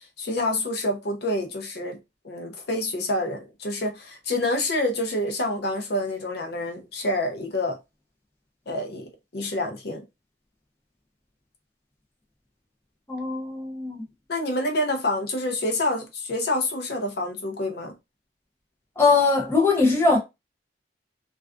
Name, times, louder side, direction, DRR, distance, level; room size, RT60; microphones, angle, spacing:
voice 1, 0.2-2.0 2.2-7.8 8.7-10.0 14.3-17.9, left 1 dB, 55° left, 0.6 m, -27 dB
voice 2, 13.1-14.0 19.0-20.2, left 3 dB, 15° left, 0.5 m, -21 dB
2.3 x 2.3 x 2.3 m
head